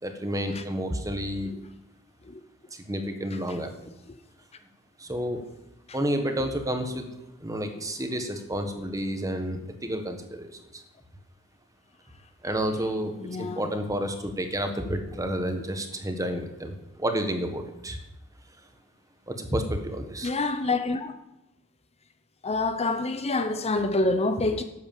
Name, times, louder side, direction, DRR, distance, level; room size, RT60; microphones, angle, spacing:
voice 1, 0.0-1.5 2.7-3.7 5.0-5.4 5.9-7.1 7.4-10.8 12.4-18.0 19.3-20.3, equal, 15° right, 1.4 m, -30 dB
voice 2, 13.2-13.6 20.2-21.1 22.4-24.6, left 2 dB, 30° left, 0.7 m, -27 dB
12.0 x 8.3 x 7.4 m
head